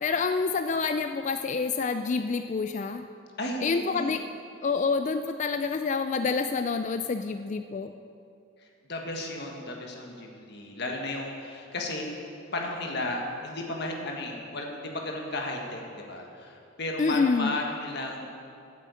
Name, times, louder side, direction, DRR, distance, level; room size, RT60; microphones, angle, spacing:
voice 1, 0.0-3.0 3.6-4.2 4.6-7.9 17.0-17.6, left 4 dB, 35° left, 8 dB, 0.3 m, -27 dB
voice 2, 3.4-4.2 8.6-12.1 12.5-18.3, left 2 dB, 55° left, 1 dB, 1.6 m, -34 dB
9.2 x 8.6 x 8.2 m, 2.5 s
head